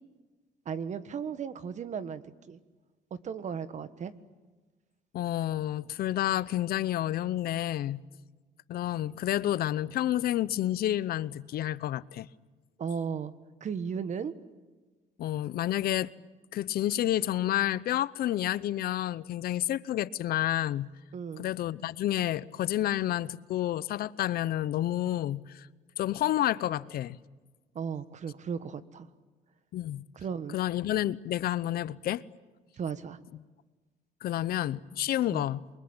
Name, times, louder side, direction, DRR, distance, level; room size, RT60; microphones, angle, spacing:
voice 1, 0.6-2.2 2.5-2.6 3.1-4.1 12.8-13.3 13.6-14.3 21.1-21.5 27.7-29.1 30.1-30.6 32.8-33.2 35.3-35.4, right 6 dB, 45° right, 1.5 m, -35 dB
voice 2, 5.1-8.0 8.7-12.3 15.2-16.1 16.5-20.9 21.4-25.7 26.0-27.2 29.7-30.0 30.5-32.2 34.2-35.7, left 13 dB, 65° left, 0.8 m, -29 dB
28.0 x 23.5 x 8.9 m
cardioid pair, 110°, 17 cm